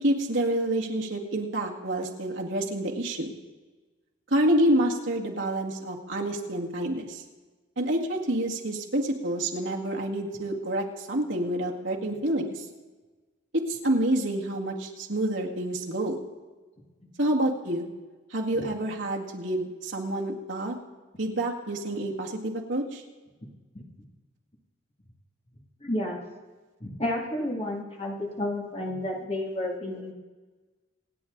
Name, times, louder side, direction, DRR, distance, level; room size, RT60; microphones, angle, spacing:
voice 1, 0.0-3.3 4.3-7.2 7.8-12.6 13.5-16.2 17.2-17.9 18.3-20.8 21.2-23.0, right 1 dB, 65° right, -1 dB, 2.0 m, -28 dB
voice 2, 25.8-26.2 26.8-30.1, left 1 dB, 30° left, -1 dB, 2.3 m, -31 dB
26.5 x 9.4 x 4.0 m, 1.3 s
head